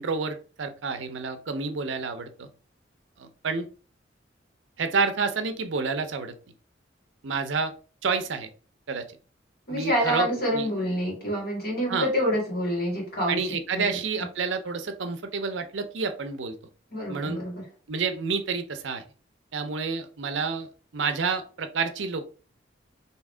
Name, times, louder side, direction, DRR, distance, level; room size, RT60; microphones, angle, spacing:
voice 1, 0.0-2.5 3.2-3.7 4.8-6.3 7.2-7.7 8.0-8.5 8.9-9.1 9.7-10.3 10.5-10.7 11.9-12.1 13.3-16.5 17.1-17.4 17.9-19.0 19.5-22.3, right 4 dB, 75° right, 7 dB, 0.6 m, -29 dB
voice 2, 9.7-13.4 13.7-13.8 16.9-17.6, equal, 55° left, -3 dB, 1.9 m, -27 dB
3.6 x 2.8 x 3.2 m, 0.37 s
head